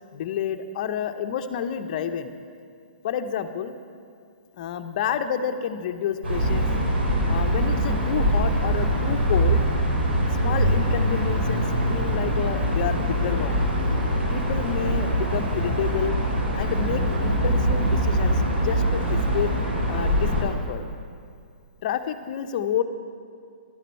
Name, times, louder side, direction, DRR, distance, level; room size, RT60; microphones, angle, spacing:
voice 1, 0.1-2.3 3.0-3.7 4.6-6.7 7.3-9.6 10.4-13.7 14.3-16.2 16.5-19.5 19.9-20.8 21.8-22.8, left 8 dB, 50° left, 9 dB, 0.7 m, -29 dB
sound 1, 6.2-20.4, equal, 90° right, 3.2 m, -23 dB
12.0 x 10.0 x 4.4 m, 2.3 s
hypercardioid pair, 135°, 6 cm